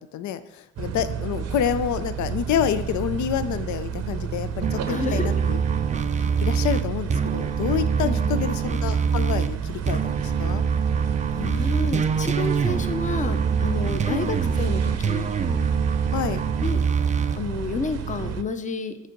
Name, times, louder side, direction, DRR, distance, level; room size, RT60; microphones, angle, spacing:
voice 1, 0.0-5.6 5.9-6.0 6.4-10.6 14.1-14.3 16.1-16.4, left 9 dB, 70° left, 13 dB, 0.5 m, -28 dB
sound 1, 0.8-18.4, right 8 dB, 60° right, 0.7 m, -31 dB
sound 2, 4.6-9.5 9.9-17.4, right 6 dB, 25° right, 0.4 m, -24 dB
voice 2, 4.9-5.5 8.0-8.5 11.3-15.3 16.6-16.8 17.3-19.1, left 4 dB, 25° left, 9 dB, 0.6 m, -30 dB
6.5 x 4.6 x 5.2 m, 0.95 s
cardioid pair, 90°, 30 cm